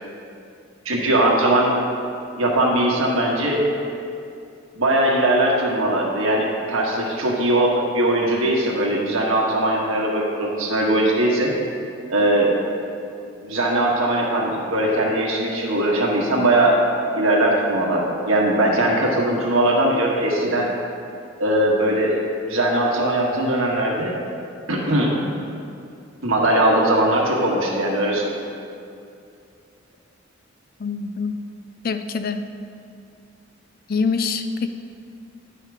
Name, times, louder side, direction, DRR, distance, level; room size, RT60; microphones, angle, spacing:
voice 1, 0.8-1.8 2.4-3.7 4.7-11.5 12.1-12.8 13.4-16.8 17.1-20.7 21.4-22.2 22.5-24.2 24.7-25.1 26.2-28.3, right 1 dB, 85° right, -2 dB, 1.6 m, -20 dB
voice 2, 30.8-31.3 31.8-32.5 33.9-34.7, left 4 dB, 45° left, 9 dB, 0.4 m, -24 dB
10.0 x 5.7 x 4.7 m, 2.4 s
head